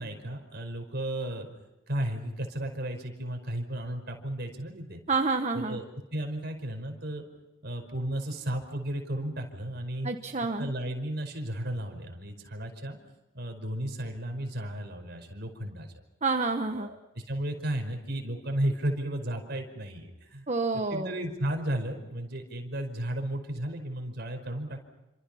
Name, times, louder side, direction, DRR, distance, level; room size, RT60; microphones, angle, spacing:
voice 1, 0.0-1.5 1.9-5.0 5.5-5.8 6.1-7.2 7.6-10.1 10.6-13.0 13.3-15.9 16.7-17.0 17.3-20.5 20.7-24.8, right 1 dB, 50° right, 5 dB, 5.2 m, -34 dB
voice 2, 5.1-5.8 10.0-10.7 16.2-16.9 20.5-21.1, right 3 dB, 35° right, 5 dB, 1.2 m, -28 dB
29.5 x 26.5 x 5.8 m, 1.0 s
head